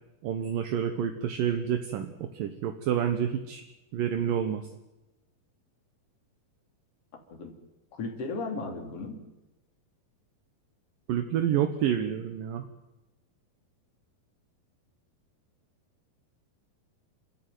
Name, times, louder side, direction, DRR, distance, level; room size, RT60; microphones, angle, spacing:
voice 1, 0.2-3.6 3.9-4.6 11.1-12.7, right 9 dB, 70° right, 7 dB, 2.7 m, -28 dB
voice 2, 7.9-9.2, left 3 dB, 40° left, 3 dB, 3.9 m, -35 dB
29.5 x 13.5 x 9.3 m, 1.0 s
omnidirectional pair, 4.3 m